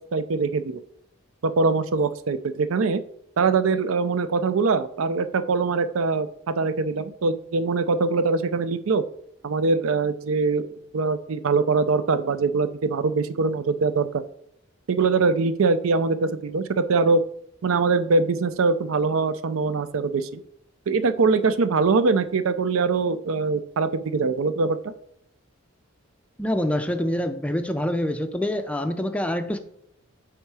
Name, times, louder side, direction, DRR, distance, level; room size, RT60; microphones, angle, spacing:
voice 1, 0.1-0.8 1.4-3.0 3.4-9.0 9.4-10.7 10.9-14.2 14.9-17.2 17.6-20.4 20.9-24.9, right 4 dB, 70° right, 12 dB, 0.5 m, -23 dB
voice 2, 26.4-29.6, left 1 dB, 5° left, 8 dB, 0.4 m, -26 dB
8.4 x 3.6 x 4.8 m, 0.72 s
head